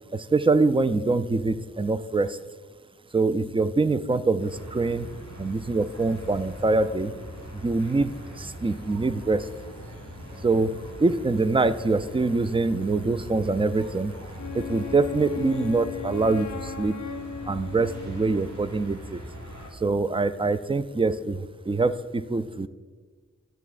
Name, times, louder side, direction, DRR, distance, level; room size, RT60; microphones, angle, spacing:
voice 1, 0.1-2.4 3.1-5.1 5.4-7.1 7.6-9.4 10.4-14.1 14.5-17.0 17.5-19.2 19.8-22.7, right 3 dB, 20° right, 13 dB, 0.3 m, -24 dB
sound 1, 4.4-19.7, equal, 80° right, 2.2 m, -41 dB
Wind instrument woodwind instrument, 14.4-18.7, left 7 dB, 85° left, 0.5 m, -37 dB
10.5 x 7.9 x 2.4 m, 1.4 s
wide cardioid pair, 45°, 29 cm